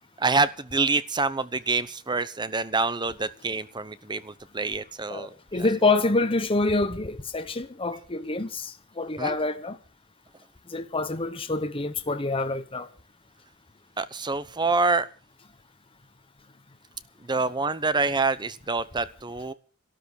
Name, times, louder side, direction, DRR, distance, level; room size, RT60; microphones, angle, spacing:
voice 1, 0.2-5.3 9.2-9.3 14.0-15.0 17.3-19.5, right 3 dB, 20° right, 0.8 m, -26 dB
voice 2, 5.1-9.8 10.7-12.9, left 3 dB, 25° left, 1.0 m, -27 dB
13.0 x 12.5 x 6.3 m
head